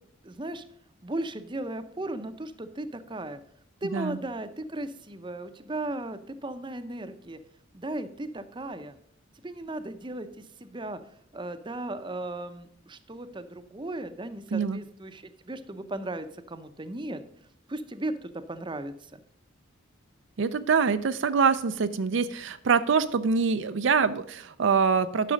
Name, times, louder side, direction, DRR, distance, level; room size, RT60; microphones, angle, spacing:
voice 1, 0.2-0.6 1.0-3.4 3.8-7.4 7.7-9.0 9.4-11.0 11.3-17.2 17.7-19.2, right 2 dB, 25° right, 10 dB, 0.6 m, -36 dB
voice 2, 20.4-25.3, right 5 dB, 60° right, 11 dB, 0.4 m, -24 dB
11.0 x 6.1 x 5.0 m, 0.68 s
head